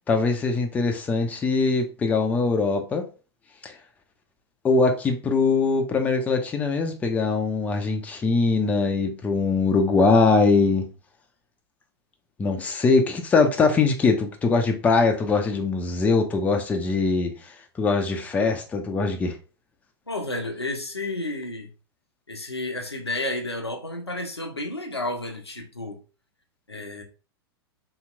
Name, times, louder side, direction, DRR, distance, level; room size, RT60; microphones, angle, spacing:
voice 1, 0.1-3.1 3.6-3.7 4.6-10.9 12.4-17.5 17.8-19.4, left 4 dB, 10° left, 0.4 m, -22 dB
voice 2, 20.1-21.7 22.3-26.0 26.7-27.0, left 2 dB, 90° left, 0.6 m, -31 dB
2.9 x 2.8 x 2.3 m
figure-of-eight pair, 100°, 13 cm